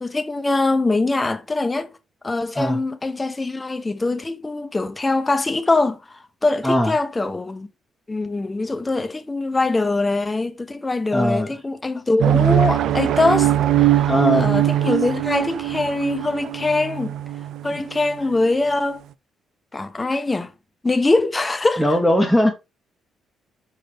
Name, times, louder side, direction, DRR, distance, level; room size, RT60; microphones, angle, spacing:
voice 1, 0.0-1.9 2.2-7.7 8.1-17.1 17.6-19.0 19.7-20.5 20.8-21.8, left 2 dB, 20° left, 0.8 m, -23 dB
voice 2, 11.1-11.5 14.1-14.6 17.7-17.8 21.8-22.5, left 1 dB, ahead, 1.0 m, -19 dB
sound 1, 12.2-18.5, right 12 dB, 75° right, 0.3 m, -21 dB
5.5 x 5.2 x 3.3 m
cardioid pair, 90°, 0 cm